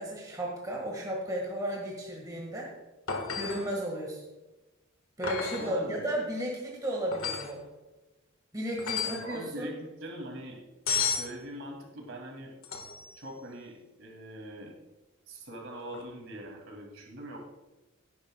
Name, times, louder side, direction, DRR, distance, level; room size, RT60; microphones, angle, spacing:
voice 1, 0.0-2.7 3.3-4.2 5.2-7.6 8.5-9.7, right 1 dB, 20° right, -2 dB, 1.8 m, -34 dB
sound 1, 3.1-3.7 5.2-5.7 7.1-7.5 8.8-9.3 10.9-11.3 12.6-13.1 15.9-16.0, left 6 dB, 90° left, 1.6 m, -32 dB
voice 2, 5.6-6.1 9.0-10.6 11.1-12.5 13.1-14.7 15.3-17.4, right 1 dB, 65° right, 0 dB, 2.6 m, -42 dB
17.0 x 10.0 x 2.3 m, 1.1 s
head